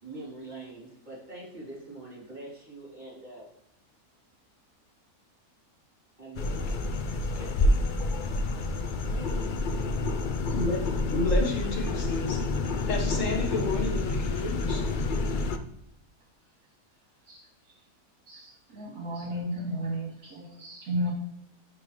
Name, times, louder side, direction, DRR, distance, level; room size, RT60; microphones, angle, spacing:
voice 1, 0.0-3.5 6.2-6.8 7.1-8.0 8.5-9.7, right 2 dB, 30° right, -6 dB, 3.0 m, -44 dB
sound 1, 6.4-15.6, left 2 dB, 90° left, 0.4 m, -28 dB
voice 2, 11.1-12.4 12.9-14.8, left 3 dB, 60° left, 1 dB, 1.7 m, -30 dB
voice 3, 18.3-21.1, equal, 75° right, -3 dB, 3.2 m, -33 dB
10.5 x 3.8 x 3.1 m, 0.79 s
omnidirectional pair, 1.6 m